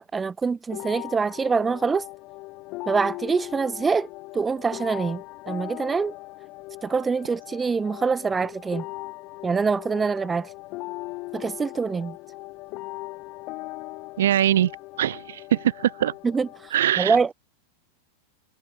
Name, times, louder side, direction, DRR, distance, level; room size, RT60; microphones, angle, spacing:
voice 1, 0.0-2.0 2.9-6.1 6.8-8.9 9.4-10.5 11.3-12.2 16.2-17.3, right 5 dB, 10° right, 0.7 m, -25 dB
sound 1, 0.7-16.7, left 22 dB, 30° left, 1.5 m, -39 dB
voice 2, 14.2-14.7 15.0-16.1 16.7-17.2, right 11 dB, 90° right, 1.1 m, -22 dB
supercardioid pair, 175°, 0 cm